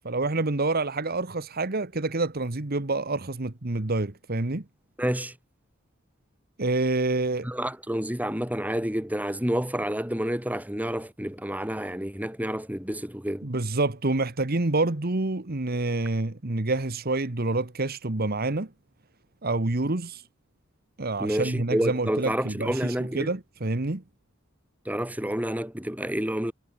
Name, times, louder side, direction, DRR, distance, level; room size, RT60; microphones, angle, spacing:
voice 1, 0.0-4.6 6.6-7.5 13.4-18.7 19.4-20.2 21.0-24.0, right 2 dB, 50° right, 1.4 m, -27 dB
voice 2, 5.0-5.3 7.4-13.5 21.2-23.3 24.9-26.5, equal, 10° right, 3.6 m, -29 dB
head